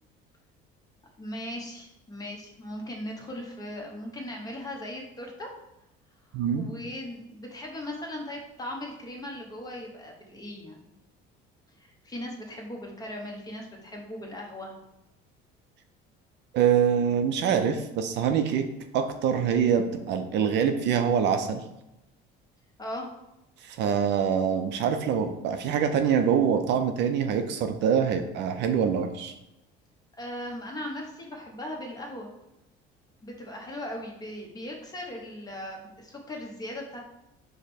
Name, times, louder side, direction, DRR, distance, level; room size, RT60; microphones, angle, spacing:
voice 1, 1.2-5.5 6.6-10.8 11.8-14.7 22.8-23.1 30.2-32.3 33.2-37.0, left 1 dB, 20° left, 0 dB, 0.9 m, -38 dB
voice 2, 6.3-6.6 16.5-18.7 18.9-21.6 23.6-29.3, right 7 dB, 60° right, 7 dB, 0.5 m, -25 dB
5.0 x 2.2 x 4.2 m, 0.90 s
cardioid pair, 130°, 21 cm